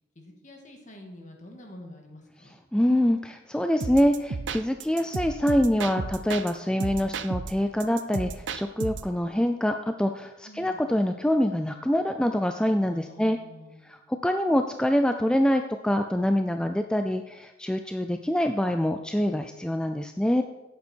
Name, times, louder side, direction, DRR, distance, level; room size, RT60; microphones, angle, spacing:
voice 1, 0.2-2.5 10.4-10.9 12.9-14.1, left 1 dB, 40° left, 2 dB, 2.0 m, -47 dB
voice 2, 2.7-13.4 13.9-20.4, equal, 5° left, 6 dB, 0.4 m, -25 dB
sound 1, 3.8-6.5 6.8-9.1, right 4 dB, 85° right, 0.6 m, -34 dB
11.0 x 8.4 x 4.5 m, 1.0 s
head